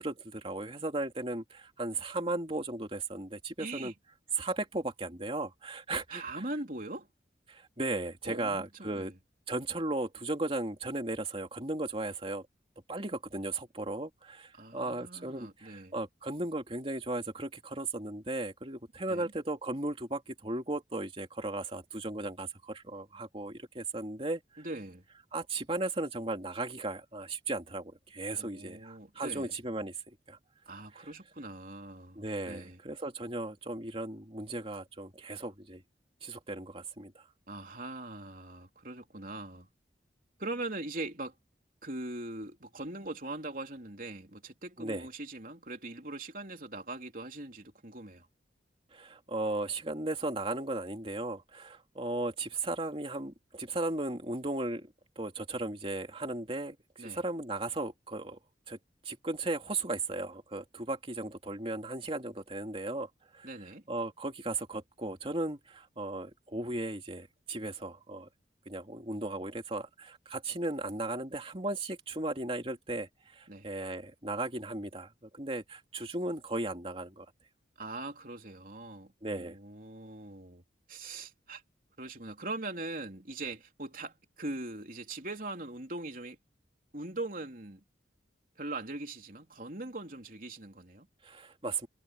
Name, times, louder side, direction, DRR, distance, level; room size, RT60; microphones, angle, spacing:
voice 1, 0.0-3.9 4.4-6.2 7.5-9.1 9.5-12.4 12.9-24.6 25.3-30.0 30.3-30.4 30.9-31.1 32.2-35.8 36.2-37.2 44.8-45.1 48.9-58.4 58.7-58.8 59.0-63.1 63.3-63.5 63.9-68.3 68.7-77.3 79.2-79.6 91.2-91.9, right 2 dB, 30° right, 2.7 m, -36 dB
voice 2, 3.6-3.9 6.1-7.1 8.3-9.1 14.5-15.9 19.1-19.3 24.6-25.0 28.3-29.5 30.7-32.8 37.5-39.7 40.4-41.4 41.8-48.3 57.0-57.2 63.4-63.8 73.5-73.7 77.8-80.6 80.9-81.6 82.0-86.4 86.9-87.8 88.6-91.1, right 2 dB, 50° right, 3.7 m, -41 dB
head